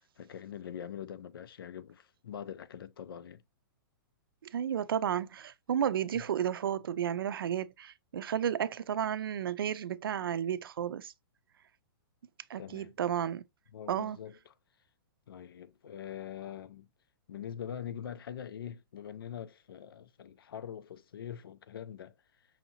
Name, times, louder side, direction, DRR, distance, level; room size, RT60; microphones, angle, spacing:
voice 1, 0.2-3.4 6.1-6.2 12.6-12.9 13.7-14.5 15.3-16.9 17.3-22.2, left 9 dB, 90° left, 0.5 m, -43 dB
voice 2, 4.5-11.1 12.5-13.4 13.9-14.2, right 9 dB, 80° right, 0.5 m, -32 dB
5.6 x 2.7 x 2.7 m
hypercardioid pair, 175°, 12 cm